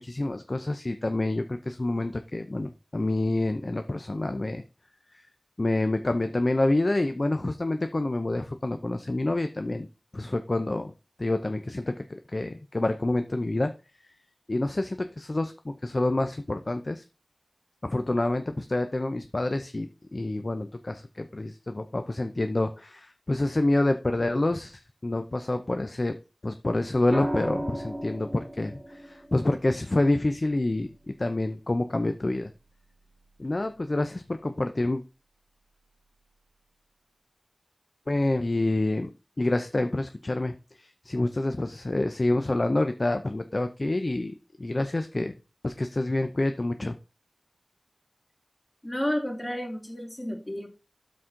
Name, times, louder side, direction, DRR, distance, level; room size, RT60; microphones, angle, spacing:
voice 1, 0.0-4.6 5.6-9.9 10.1-10.9 11.2-13.7 14.5-17.0 17.8-26.2 26.4-32.5 33.4-35.0 38.1-39.1 39.4-44.3 44.6-45.3 45.6-47.0, left 2 dB, 45° left, 8 dB, 0.6 m, -27 dB
sound 1, 27.1-31.2 32.9-33.3, equal, 15° right, 2.8 m, -36 dB
voice 2, 48.8-50.7, equal, 20° left, 2 dB, 2.5 m, -31 dB
12.5 x 4.2 x 3.8 m, 0.32 s
wide cardioid pair, 65°, 0 cm